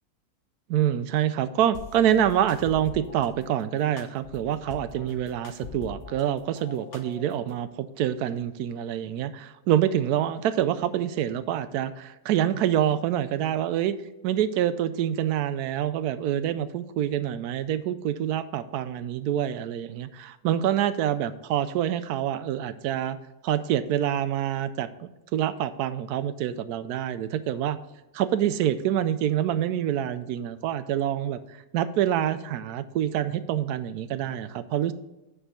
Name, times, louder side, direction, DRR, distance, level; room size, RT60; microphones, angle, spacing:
voice 1, 0.7-13.9 14.2-23.2 23.4-27.8 28.1-31.4 31.7-34.9, right 10 dB, 85° right, 13 dB, 1.1 m, -26 dB
sound 1, 1.7-3.3 4.0-6.2 6.6-7.5, left 5 dB, 70° left, 1.4 m, -42 dB
8.8 x 4.7 x 5.1 m, 0.99 s
omnidirectional pair, 1.6 m